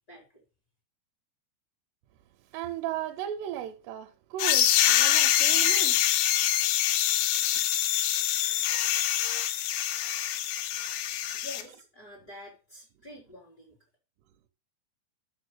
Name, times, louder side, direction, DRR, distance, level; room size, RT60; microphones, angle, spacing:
voice 1, 0.1-0.4 11.3-13.8, left 1 dB, 25° left, 3.5 m, -47 dB
voice 2, 2.5-6.2 7.5-7.7 8.5-8.6 11.2-11.4, right 11 dB, 80° right, 2.9 m, -36 dB
sound 1, 4.4-11.6, left 12 dB, 80° left, 2.7 m, -25 dB
6.8 x 6.7 x 6.4 m
omnidirectional pair, 5.0 m